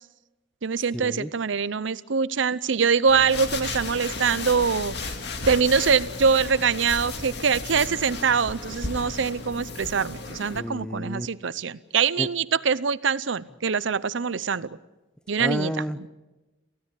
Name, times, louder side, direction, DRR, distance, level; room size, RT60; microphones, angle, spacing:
voice 1, 0.6-5.2 5.5-14.8 15.3-15.7, right 5 dB, 75° right, 17 dB, 0.7 m, -24 dB
sound 1, 3.1-10.6, left 3 dB, 60° left, 2.2 m, -34 dB
voice 2, 10.5-11.3 12.2-12.3 15.4-16.1, equal, 5° left, 12 dB, 0.7 m, -30 dB
28.0 x 16.0 x 8.4 m, 1.1 s
head